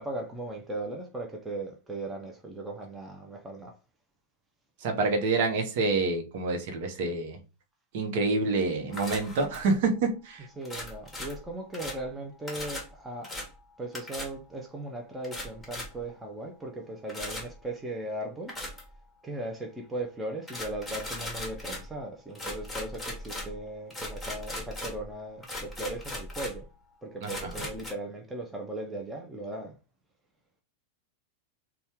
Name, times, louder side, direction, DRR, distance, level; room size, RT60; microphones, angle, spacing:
voice 1, 0.0-3.8 10.6-13.3 13.8-18.5 19.2-26.7 27.0-29.8, right 1 dB, 10° right, 0.7 m, -38 dB
voice 2, 4.8-7.4 7.9-10.5 27.2-27.5, right 3 dB, 50° right, 1.0 m, -27 dB
sound 1, 8.9-9.8 10.6-12.1 12.5-12.9 13.2-13.5 13.9-14.3 15.2-16.0 17.1-17.6 18.5-19.0 20.5-22.0 22.4-25.1 25.4-26.7 27.2-27.9, left 1 dB, 5° left, 1.2 m, -38 dB
4.1 x 2.3 x 3.4 m
figure-of-eight pair, 90°, 0 cm